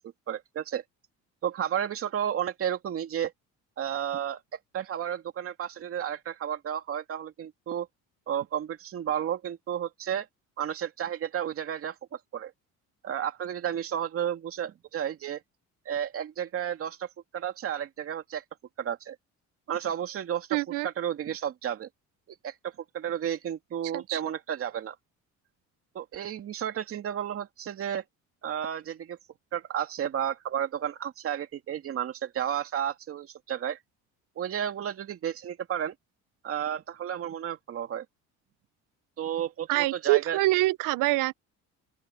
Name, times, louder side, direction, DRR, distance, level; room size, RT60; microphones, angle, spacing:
voice 1, 0.3-0.8 1.4-3.3 3.8-7.9 8.3-10.3 10.6-12.5 13.0-15.4 15.9-17.1 17.3-18.4 18.8-19.2 19.7-20.6 20.8-21.9 22.4-22.5 22.9-25.0 25.9-28.0 28.4-29.2 29.5-33.8 34.4-35.9 36.4-38.0 39.2-40.4, right 9 dB, 45° right, 2.5 m, -32 dB
voice 2, 20.5-20.9 23.9-24.2 39.7-41.4, right 20 dB, 85° right, 0.6 m, -25 dB
open air
cardioid pair, 160°, 31 cm